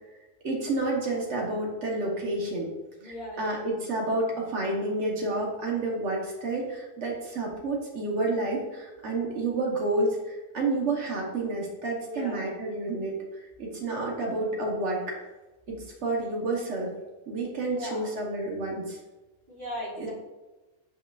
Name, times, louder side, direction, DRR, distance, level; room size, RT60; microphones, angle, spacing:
voice 1, 0.4-2.7 3.0-13.2 13.6-15.2 15.7-16.9 17.3-19.0 20.0-20.1, right 2 dB, 70° right, -2 dB, 1.4 m, -30 dB
voice 2, 3.0-3.6 12.1-12.4 17.6-18.1 19.5-20.1, equal, 45° right, -7 dB, 1.9 m, -37 dB
6.7 x 5.7 x 2.5 m, 1.1 s
omnidirectional pair, 1.2 m